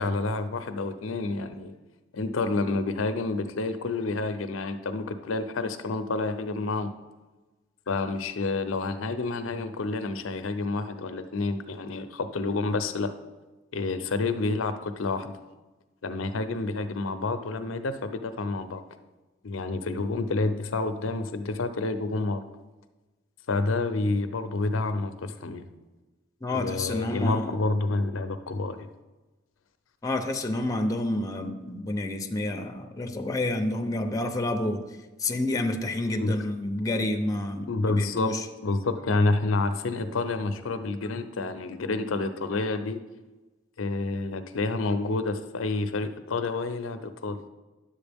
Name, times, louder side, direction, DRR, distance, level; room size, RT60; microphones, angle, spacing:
voice 1, 0.0-1.7 2.1-6.9 7.9-13.1 13.7-15.3 16.0-18.8 19.4-22.4 23.5-25.6 26.5-28.9 36.2-36.3 37.7-43.0 43.8-47.4, left 3 dB, 85° left, 10 dB, 0.6 m, -29 dB
voice 2, 26.4-27.6 30.0-34.8 35.2-38.4, left 1 dB, 15° left, 5 dB, 0.6 m, -29 dB
10.5 x 7.4 x 3.5 m, 1.2 s
head